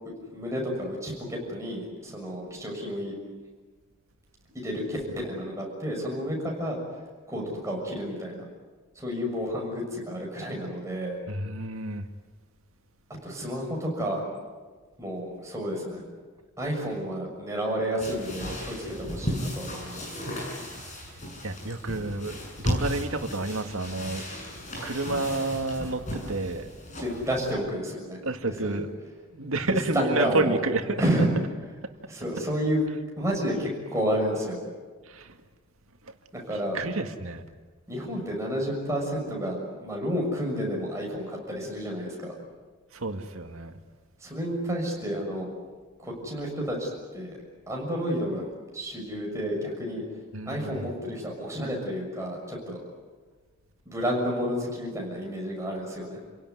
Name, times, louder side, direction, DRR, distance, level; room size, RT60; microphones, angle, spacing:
voice 1, 0.3-3.2 4.5-6.8 7.3-8.5 8.9-11.2 13.2-14.3 15.0-16.0 16.6-20.4 26.2-26.4 27.0-28.8 29.7-30.6 31.0-31.3 32.1-32.8 33.2-34.6 36.3-36.8 37.9-42.3 44.2-45.5 46.0-47.4 47.7-48.4 48.7-50.0 50.5-52.8 53.8-56.2, equal, 15° right, -1 dB, 6.4 m, -30 dB
voice 2, 11.3-12.1 21.4-24.2 24.8-26.7 28.2-28.9 29.3-31.0 35.1-35.4 36.0-36.1 36.7-37.4 42.9-43.8 50.3-50.9, right 2 dB, 85° right, 6 dB, 2.0 m, -30 dB
sound 1, 18.0-27.5, equal, 35° left, 6.6 m, -35 dB
30.0 x 17.5 x 9.5 m, 1.4 s
head